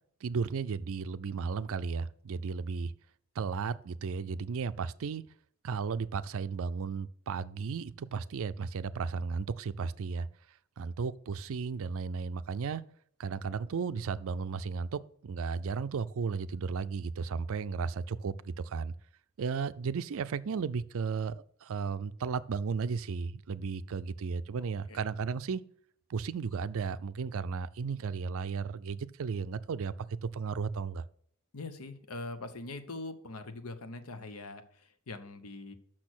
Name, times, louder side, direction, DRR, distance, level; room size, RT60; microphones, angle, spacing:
voice 1, 0.2-2.9 3.4-5.2 5.6-10.3 10.8-12.8 13.2-18.9 19.4-25.6 26.1-29.9 30.2-31.0, right 5 dB, 65° right, 0.4 m, -34 dB
voice 2, 24.6-25.0 31.5-35.7, left 2 dB, 75° left, 0.9 m, -43 dB
6.4 x 6.1 x 6.1 m
head